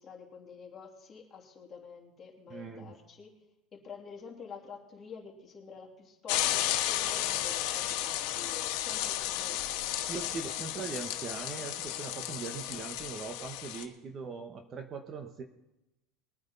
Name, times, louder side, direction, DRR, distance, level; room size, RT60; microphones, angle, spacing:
voice 1, 0.0-3.3 3.7-9.6, left 6 dB, 25° left, -1 dB, 3.2 m, -48 dB
voice 2, 2.5-2.9 10.1-15.4, right 5 dB, 30° right, 6 dB, 1.2 m, -40 dB
sound 1, 6.3-13.8, left 13 dB, 70° left, 1.5 m, -33 dB
22.0 x 9.4 x 4.1 m, 0.95 s
supercardioid pair, 140°, 0 cm